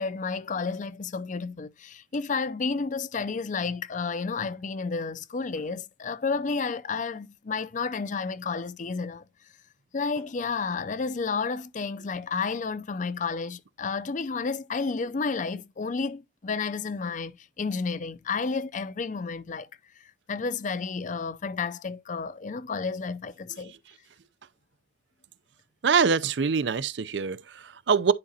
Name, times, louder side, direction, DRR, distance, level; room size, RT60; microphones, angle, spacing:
voice 1, 0.0-9.2 9.9-19.7 20.0-23.7, left 4 dB, 45° left, 0.5 m, -31 dB
voice 2, 25.8-28.1, right 6 dB, 80° right, 0.5 m, -24 dB
9.8 x 4.9 x 2.8 m
head